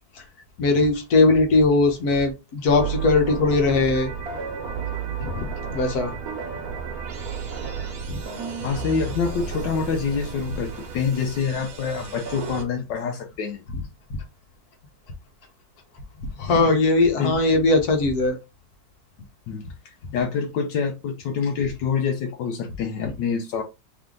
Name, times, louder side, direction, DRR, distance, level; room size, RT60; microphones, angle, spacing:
voice 1, 0.6-4.1 5.2-6.1 8.1-8.2 16.2-18.4, left 3 dB, 60° left, 1.6 m, -20 dB
sound 1, 2.7-12.6, right 6 dB, 60° right, 1.3 m, -32 dB
voice 2, 8.6-13.6 16.5-16.7 17.2-17.3 19.5-23.6, left 6 dB, 80° left, 1.3 m, -26 dB
3.5 x 3.5 x 3.7 m
omnidirectional pair, 2.0 m